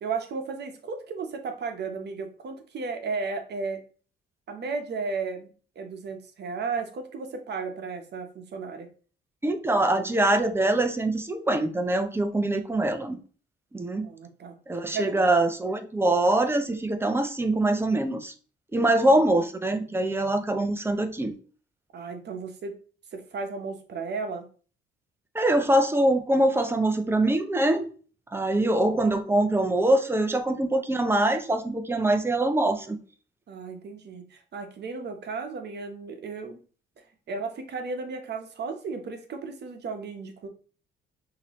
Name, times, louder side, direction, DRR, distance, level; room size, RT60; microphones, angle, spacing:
voice 1, 0.0-3.8 4.5-5.5 5.8-8.9 14.0-14.6 14.9-15.1 18.8-19.1 21.9-22.7 23.1-24.5 33.5-36.6 37.3-40.5, right 4 dB, 60° right, 6 dB, 1.0 m, -34 dB
voice 2, 9.4-13.2 13.7-14.1 14.7-18.3 18.7-21.3 25.3-27.9 28.3-33.0, right 1 dB, 10° right, 7 dB, 0.7 m, -24 dB
5.8 x 2.9 x 3.1 m, 0.40 s
cardioid pair, 90°, 20 cm